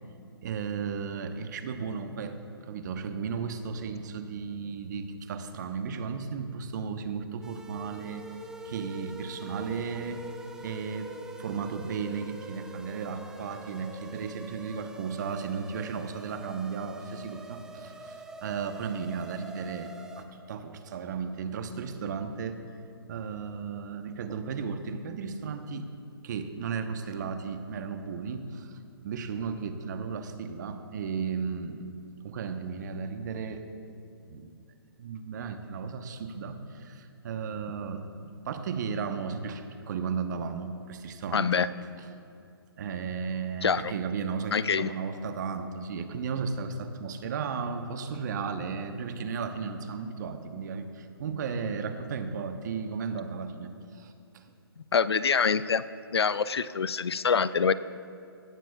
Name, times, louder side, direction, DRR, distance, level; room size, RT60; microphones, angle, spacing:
voice 1, 0.4-2.4 2.6-8.2 8.6-10.2 10.6-11.1 11.4-19.9 20.2-22.6 23.1-25.9 26.2-28.8 29.0-31.8 32.2-33.6 34.3-34.5 35.0-41.6 42.8-54.5, right 5 dB, 45° right, 8 dB, 1.0 m, -35 dB
sound 1, 7.4-20.2, right 2 dB, 5° right, 0.5 m, -44 dB
voice 2, 41.3-41.7 43.6-43.9 44.5-44.9 54.9-55.8 56.1-57.7, left 6 dB, 85° left, 16 dB, 0.5 m, -25 dB
16.5 x 13.5 x 2.4 m, 2.5 s
hypercardioid pair, 140°, 13 cm